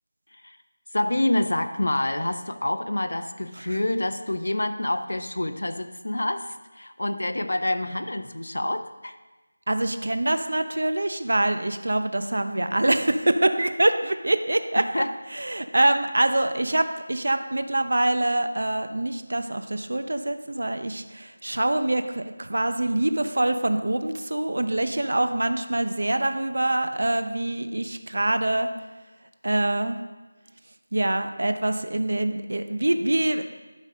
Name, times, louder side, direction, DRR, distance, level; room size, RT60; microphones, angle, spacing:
voice 1, 0.9-9.2 14.8-15.1, left 1 dB, 75° left, 8 dB, 0.6 m, -27 dB
voice 2, 9.7-14.9 15.3-28.7 29.4-30.0 30.9-33.4, right 1 dB, 60° right, 8 dB, 0.7 m, -25 dB
11.5 x 4.1 x 5.2 m, 1.2 s
figure-of-eight pair, 175°, 0 cm